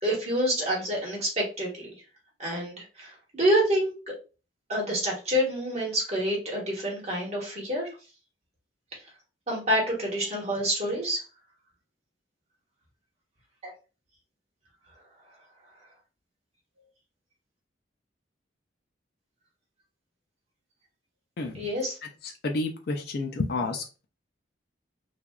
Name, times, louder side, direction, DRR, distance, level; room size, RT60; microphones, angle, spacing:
voice 1, 0.0-1.9 2.4-3.9 4.7-7.9 9.5-11.2 13.6-13.7 21.5-22.0, equal, 35° right, -3 dB, 1.0 m, -27 dB
voice 2, 22.4-23.8, left 3 dB, 50° left, 2 dB, 0.4 m, -29 dB
3.3 x 2.3 x 2.2 m, 0.33 s
head